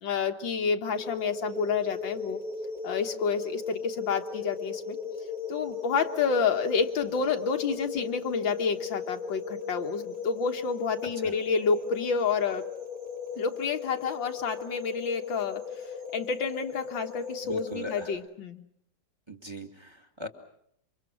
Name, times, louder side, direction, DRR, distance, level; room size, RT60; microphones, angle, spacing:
voice 1, 0.0-2.4 2.8-5.0 5.5-12.7 13.4-15.6 16.1-18.6, left 5 dB, 80° left, 5 dB, 2.1 m, -29 dB
sound 1, 0.9-18.1, left 5 dB, 60° right, 5.7 m, -37 dB
voice 2, 17.4-18.1 19.3-20.3, equal, 15° right, 6 dB, 1.9 m, -40 dB
28.0 x 25.5 x 6.2 m, 0.72 s
omnidirectional pair, 2.0 m